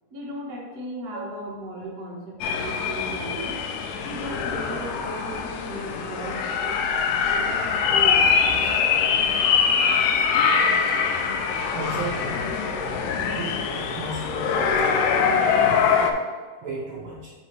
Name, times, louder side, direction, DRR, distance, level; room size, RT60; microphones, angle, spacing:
voice 1, 0.1-3.6 4.0-6.8 7.2-8.3, right 1 dB, 55° right, -4 dB, 1.1 m, -36 dB
sound 1, 2.4-16.1, left 6 dB, 80° left, 2.1 m, -23 dB
voice 2, 11.3-12.4 13.3-16.0 16.6-17.3, right 2 dB, 85° right, -6 dB, 1.1 m, -35 dB
7.8 x 3.0 x 4.6 m, 1.4 s
omnidirectional pair, 3.7 m